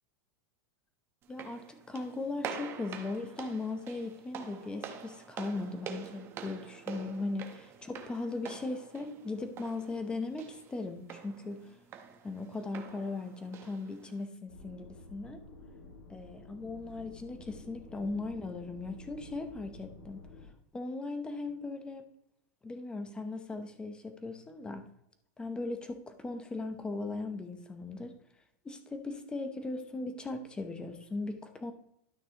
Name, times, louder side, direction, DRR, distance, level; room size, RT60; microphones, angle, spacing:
sound 1, 1.2-14.3, right 7 dB, 25° right, 0.9 m, -46 dB
voice 1, 1.3-11.6 12.2-15.4 16.1-20.2 20.7-22.1 22.6-24.8 25.4-28.1 28.6-31.7, left 3 dB, 10° left, 8 dB, 0.7 m, -38 dB
sound 2, 14.5-20.5, left 2 dB, 75° left, 2.5 m, -51 dB
12.0 x 6.1 x 2.9 m, 0.75 s
supercardioid pair, 155°, 9 cm